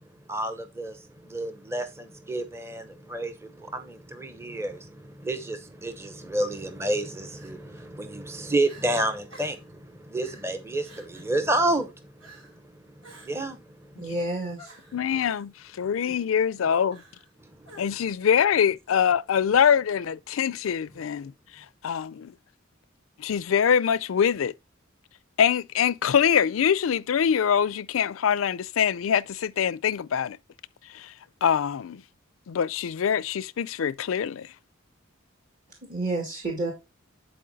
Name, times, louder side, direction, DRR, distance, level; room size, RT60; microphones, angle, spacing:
voice 1, 0.3-13.9 17.4-17.7, right 1 dB, 15° right, 0.8 m, -30 dB
Crying sobbing, 5.8-6.1 7.3-7.9 8.3-8.4 8.6-8.9 9.3-9.7 10.2-10.5 10.8-11.3 12.2-12.6 13.0-13.6 14.6-15.4 16.9-17.3 17.6-18.2, right 1 dB, 70° right, 4.7 m, -51 dB
voice 2, 14.0-14.7 35.9-36.7, right 2 dB, 40° right, 2.0 m, -30 dB
voice 3, 14.9-17.0 17.8-22.3 23.2-24.5 25.4-30.4 30.9-31.1 31.4-32.0 32.5-34.5, left 8 dB, 85° left, 0.4 m, -24 dB
10.0 x 4.5 x 4.0 m
head